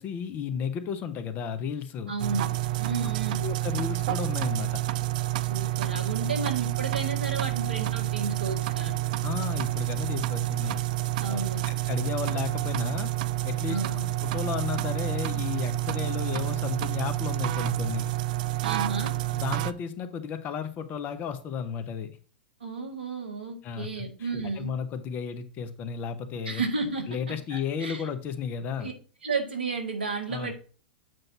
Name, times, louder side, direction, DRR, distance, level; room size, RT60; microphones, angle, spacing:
voice 1, 0.0-2.1 3.4-4.8 9.2-10.8 11.3-13.1 13.4-13.8 14.2-18.0 19.3-22.1 23.6-26.6 27.1-28.9 30.3-30.5, left 7 dB, 35° left, 9 dB, 0.9 m, -33 dB
voice 2, 2.1-2.5 2.8-3.5 5.4-8.9 11.2-11.7 13.7-14.1 18.6-19.1 22.6-24.7 26.4-27.1 27.5-28.1 28.8-28.9 29.2-30.5, right 4 dB, 80° right, 3 dB, 1.7 m, -32 dB
sound 1, 2.2-19.7, right 15 dB, 55° right, 0.4 m, -29 dB
7.7 x 2.6 x 5.7 m, 0.38 s
hypercardioid pair, 100°, 5 cm